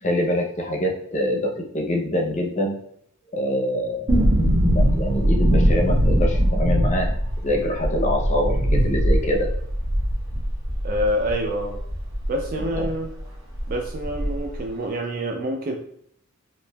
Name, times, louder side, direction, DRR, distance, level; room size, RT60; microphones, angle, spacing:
voice 1, 0.0-2.7 3.3-4.1 4.6-7.2 7.4-9.5 12.7-12.9, left 1 dB, 35° left, 1 dB, 0.6 m, -25 dB
sound 1, 4.1-12.9 13.2-13.3 13.5-14.6 14.8-14.9, equal, 65° right, 1.0 m, -21 dB
voice 2, 10.8-11.8 12.3-13.1 13.7-15.8, equal, 45° right, 3 dB, 0.3 m, -26 dB
4.5 x 2.6 x 2.2 m, 0.69 s
head